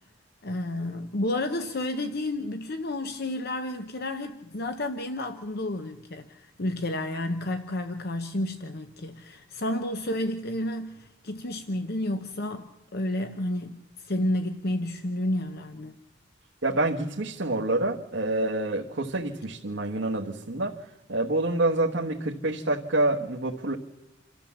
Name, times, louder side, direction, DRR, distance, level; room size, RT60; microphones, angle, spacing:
voice 1, 0.4-16.0, left 1 dB, 55° left, 7 dB, 0.9 m, -31 dB
voice 2, 16.6-20.7 21.1-23.7, right 2 dB, 75° right, -1 dB, 1.4 m, -27 dB
28.0 x 13.5 x 7.3 m, 1.0 s
head